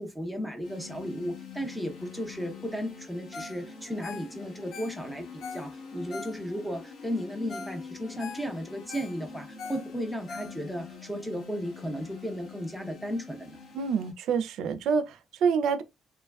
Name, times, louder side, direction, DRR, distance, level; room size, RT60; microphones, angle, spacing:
voice 1, 0.0-13.6, equal, ahead, 0.7 m, -35 dB
sound 1, 0.6-14.1, left 5 dB, 75° left, 1.0 m, -45 dB
Ringtone, 3.3-3.6 3.9-6.8 7.2-7.3 7.5-7.8 8.0-10.9 11.4-11.5, left 4 dB, 60° left, 0.4 m, -43 dB
voice 2, 13.7-15.8, right 6 dB, 85° right, 0.4 m, -27 dB
3.1 x 2.2 x 2.2 m
cardioid pair, 140°, 0 cm